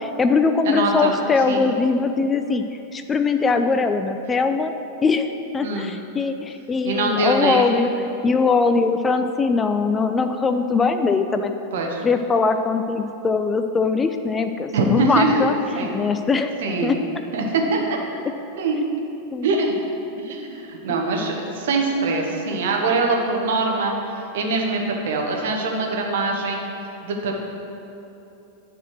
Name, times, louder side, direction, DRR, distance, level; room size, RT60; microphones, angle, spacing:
voice 1, 0.0-2.6 2.9-4.7 5.0-5.3 5.5-7.9 8.2-11.5 12.0-16.5 16.8-17.0 19.3-19.5, left 4 dB, 20° left, 8 dB, 0.4 m, -21 dB
voice 2, 0.6-1.1 1.5-1.6 5.6-5.9 6.8-7.7 11.7-12.0 14.7-15.4 15.7-15.9 16.6-16.9 17.3-17.8 18.6-18.8 19.4-19.7 20.2-26.6 27.0-27.4, right 3 dB, 55° right, 1 dB, 1.2 m, -23 dB
9.8 x 4.3 x 6.1 m, 2.9 s
figure-of-eight pair, 90°, 0 cm